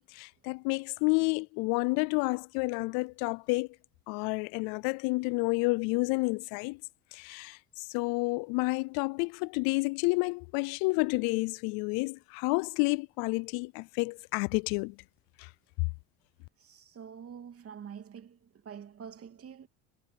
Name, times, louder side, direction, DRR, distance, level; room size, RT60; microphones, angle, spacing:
voice 1, 0.0-3.7 4.1-6.8 7.1-14.9 15.4-15.5, left 28 dB, 80° left, 0.5 m, -30 dB
voice 2, 16.6-18.4 18.6-19.7, right 7 dB, 40° right, 2.9 m, -46 dB
cardioid pair, 110°, 36 cm